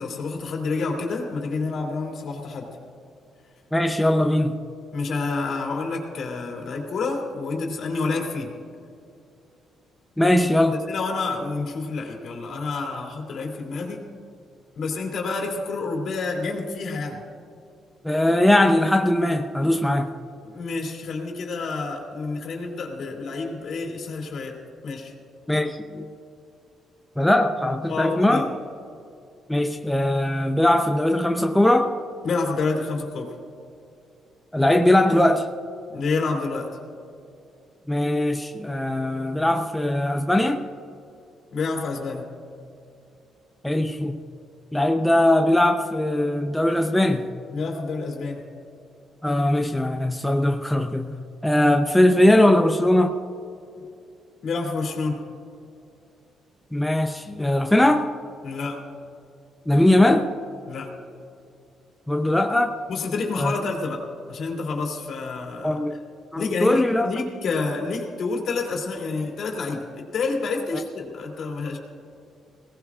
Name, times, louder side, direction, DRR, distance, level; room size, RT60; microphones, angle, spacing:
voice 1, 0.0-2.7 4.9-8.5 10.7-14.0 14.7-17.2 20.4-24.6 24.8-25.1 27.9-28.5 32.2-33.4 35.9-36.8 41.5-42.3 47.5-48.4 51.0-51.2 54.4-55.2 58.4-58.8 60.7-60.9 62.9-65.8 66.3-71.8, left 3 dB, 60° left, 0 dB, 2.9 m, -28 dB
voice 2, 3.7-4.6 10.2-10.8 18.0-20.1 25.5-26.1 27.2-28.4 29.5-31.9 34.5-35.5 37.9-40.6 43.6-44.2 44.7-47.2 49.2-51.0 51.4-53.1 56.7-58.1 59.7-60.3 62.1-62.8 63.4-63.5 65.6-66.0 66.3-67.1, left 1 dB, 5° left, 4 dB, 0.7 m, -20 dB
21.0 x 18.0 x 2.5 m, 2.5 s
cardioid pair, 90°, 0 cm